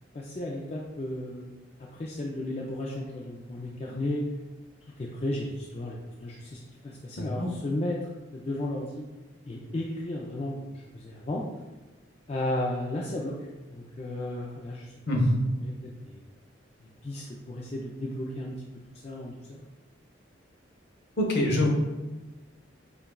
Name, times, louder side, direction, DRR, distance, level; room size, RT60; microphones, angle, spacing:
voice 1, 0.1-1.5 1.8-4.2 5.0-6.6 6.8-9.0 9.5-11.5 12.3-14.9 15.6-16.2 17.0-18.6 19.0-19.6, left 1 dB, 30° left, -3 dB, 0.4 m, -34 dB
voice 2, 7.2-7.5 15.1-15.3 21.2-21.7, left 1 dB, 55° left, 0 dB, 0.8 m, -24 dB
6.8 x 2.4 x 2.2 m, 1.2 s
head